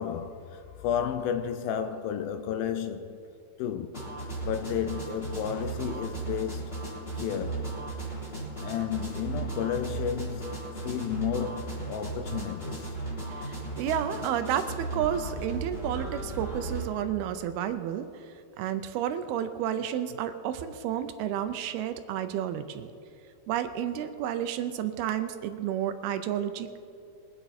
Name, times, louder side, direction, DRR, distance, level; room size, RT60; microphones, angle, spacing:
voice 1, 0.0-3.2 3.6-4.0 4.4-6.8 7.2-7.7 8.6-12.9, left 8 dB, 80° left, 2.1 m, -32 dB
sound 1, 3.9-16.9, right 3 dB, 15° left, 3.5 m, -36 dB
voice 2, 13.3-18.3 18.6-22.9 23.5-26.8, right 10 dB, 80° right, 2.5 m, -31 dB
22.5 x 9.5 x 4.2 m
omnidirectional pair, 4.7 m